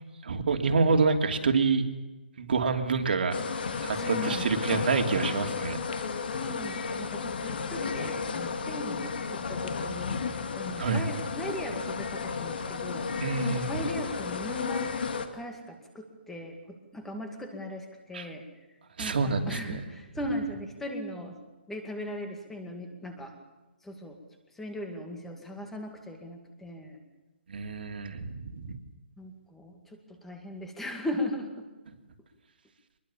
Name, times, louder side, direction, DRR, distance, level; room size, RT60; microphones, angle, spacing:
voice 1, 0.2-1.9 2.4-3.4 3.8-5.8 10.8-11.0 13.2-13.8 18.1-18.3 19.0-19.8 27.5-28.8, right 4 dB, 55° right, 5 dB, 3.0 m, -27 dB
sound 1, 3.3-15.3, left 5 dB, 55° left, 2.6 m, -33 dB
voice 2, 3.9-4.9 6.3-10.2 10.6-13.1 13.4-14.9 15.3-18.4 19.0-21.4 21.7-23.3 23.8-24.2 24.5-27.0 29.2-31.5, left 1 dB, 5° left, 4 dB, 2.1 m, -38 dB
24.0 x 22.0 x 7.3 m, 1.1 s
hypercardioid pair, 170°, 6 cm